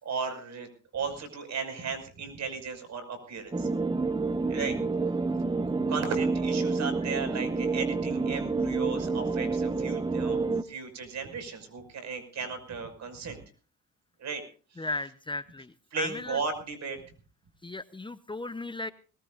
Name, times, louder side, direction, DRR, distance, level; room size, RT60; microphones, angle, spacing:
voice 1, 0.0-3.7 4.5-4.8 5.8-13.4 14.2-14.4 14.7-14.9 15.9-17.0, right 5 dB, 65° right, 6 dB, 6.0 m, -36 dB
sound 1, 3.5-10.6, right 3 dB, 15° right, 1.0 m, -28 dB
voice 2, 14.8-16.4 17.6-18.9, left 2 dB, 15° left, 12 dB, 0.9 m, -36 dB
21.5 x 19.5 x 2.6 m, 0.39 s
cardioid pair, 90°, 30 cm